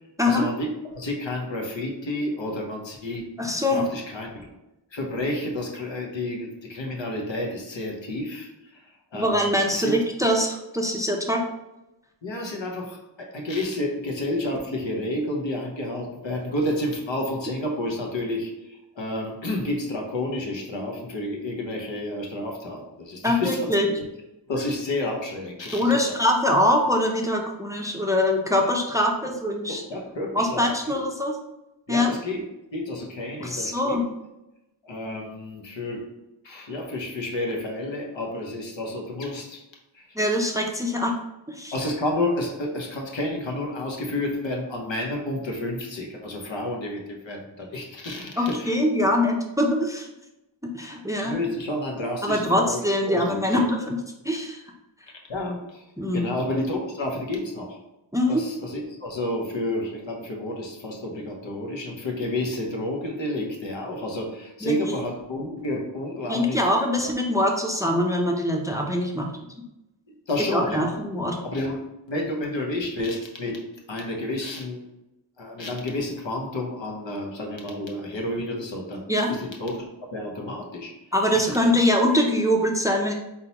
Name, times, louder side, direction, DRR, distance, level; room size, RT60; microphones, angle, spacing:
voice 1, 0.2-0.7 0.9-3.3 3.7-4.5 4.9-10.3 12.2-23.8 24.5-26.2 28.6-28.7 29.2-29.3 29.7-31.0 31.9-32.4 32.7-34.0 34.8-36.1 36.4-39.6 39.9-40.1 41.7-48.8 51.2-53.6 55.3-55.8 56.1-57.8 58.3-66.7 67.0-67.1 70.1-70.9 71.4-71.8 72.1-73.6 73.9-74.8 75.4-79.8 80.1-80.9 81.3-81.7, left 1 dB, 75° left, 0 dB, 1.0 m, -30 dB
voice 2, 3.4-3.9 9.1-11.4 23.2-23.9 25.7-29.8 30.3-31.3 31.9-32.1 33.4-34.1 40.2-41.1 41.5-41.7 48.4-50.1 50.6-51.4 52.2-54.0 54.2-54.6 56.0-56.3 58.1-58.4 64.6-64.7 66.3-69.3 70.5-71.4 79.1-79.3 81.1-83.1, left 1 dB, 5° right, 1 dB, 0.6 m, -23 dB
4.1 x 3.7 x 2.9 m, 0.94 s
wide cardioid pair, 60°, 46 cm